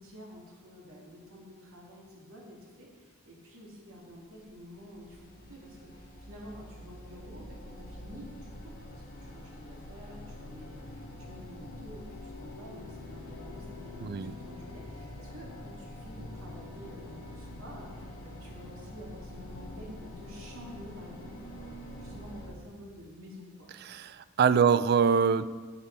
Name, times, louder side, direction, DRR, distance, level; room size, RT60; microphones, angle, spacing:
voice 1, 0.0-23.7, equal, 90° right, -2 dB, 1.9 m, -49 dB
sound 1, 4.0-22.5, left 1 dB, 45° left, 1.6 m, -45 dB
voice 2, 14.0-14.3 23.8-25.4, right 6 dB, 50° right, 14 dB, 0.3 m, -24 dB
10.0 x 5.9 x 4.4 m, 1.5 s
head